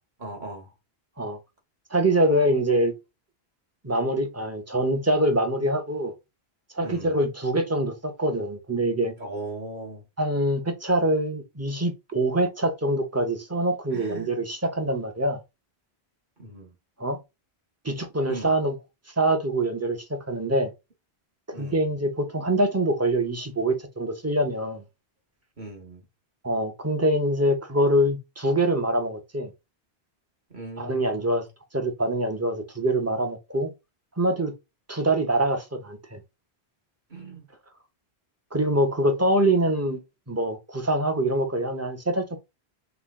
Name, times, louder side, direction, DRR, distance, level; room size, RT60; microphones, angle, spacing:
voice 1, 0.2-0.7 6.8-7.2 9.2-10.0 13.9-14.3 16.4-16.7 18.3-18.5 21.5-21.8 25.6-26.0 30.5-31.4 37.1-37.5, right 2 dB, 50° right, 1.4 m, -38 dB
voice 2, 1.9-2.9 3.8-6.1 6.7-9.1 10.2-15.4 17.0-17.2 17.8-18.8 19.2-20.7 21.6-24.8 26.4-29.5 30.8-31.4 31.7-33.7 34.2-34.5 34.9-36.2 38.5-40.0 40.3-42.4, right 1 dB, 15° right, 0.6 m, -24 dB
5.8 x 2.2 x 3.6 m
omnidirectional pair, 1.1 m